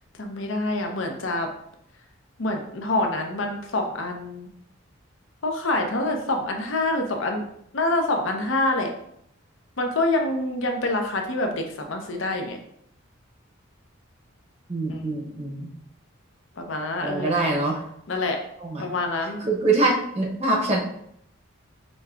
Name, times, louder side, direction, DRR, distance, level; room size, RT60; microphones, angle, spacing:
voice 1, 0.2-1.5 2.4-4.5 5.4-7.4 7.7-8.9 9.8-12.6 14.9-15.3 16.6-17.4 18.1-18.4 18.8-19.4, left 2 dB, 70° left, 3 dB, 0.7 m, -26 dB
voice 2, 14.7-15.7 17.0-17.8 18.6-18.9 19.4-20.8, right 2 dB, 30° right, -1 dB, 0.8 m, -24 dB
5.2 x 3.2 x 2.4 m, 0.71 s
head